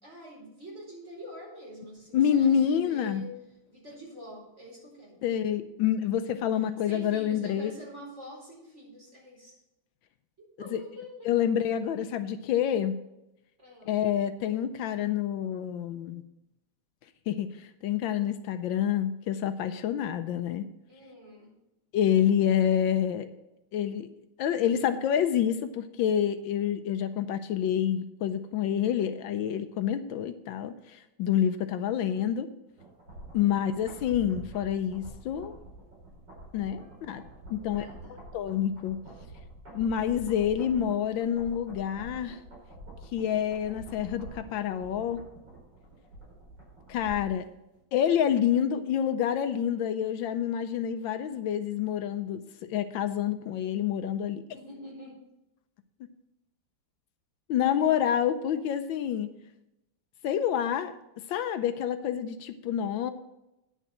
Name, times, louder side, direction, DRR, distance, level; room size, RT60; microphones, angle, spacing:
voice 1, 0.0-3.3 3.7-5.2 6.5-9.6 10.6-11.3 13.6-13.9 20.9-21.6 33.3-33.8 36.8-38.2 54.5-55.3, equal, 35° right, -4 dB, 4.6 m, -47 dB
voice 2, 2.1-3.2 5.2-7.7 10.7-10.8 11.2-13.0 13.9-16.2 17.3-20.7 21.9-23.3 23.7-24.1 24.4-32.5 33.3-35.6 36.5-37.2 37.5-37.9 38.3-39.0 39.7-42.4 43.1-45.2 46.9-47.4 47.9-54.4 57.5-59.3 60.2-60.9 61.3-63.1, left 9 dB, 80° left, 10 dB, 1.4 m, -28 dB
sound 1, 32.8-47.5 47.8-47.9, right 2 dB, 60° right, 5.1 m, -47 dB
9.9 x 6.9 x 6.0 m, 0.90 s
omnidirectional pair, 2.2 m